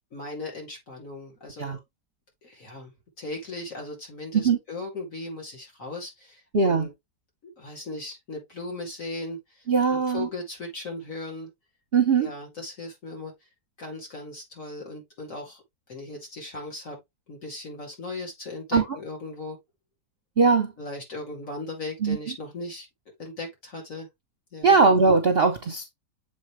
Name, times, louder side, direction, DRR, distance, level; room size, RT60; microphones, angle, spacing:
voice 1, 0.1-1.8 2.4-2.9 3.2-6.9 7.4-11.5 12.2-13.4 13.8-15.6 15.9-17.0 17.3-19.6 20.8-22.9 23.2-24.1 24.5-24.8, left 2 dB, 50° left, 3.0 m, -37 dB
voice 2, 6.5-6.9 9.7-10.3 11.9-12.3 18.7-18.8 20.4-20.7 22.0-22.2 24.6-25.9, right 4 dB, 45° right, 0.9 m, -20 dB
7.5 x 4.0 x 3.2 m
omnidirectional pair, 1.8 m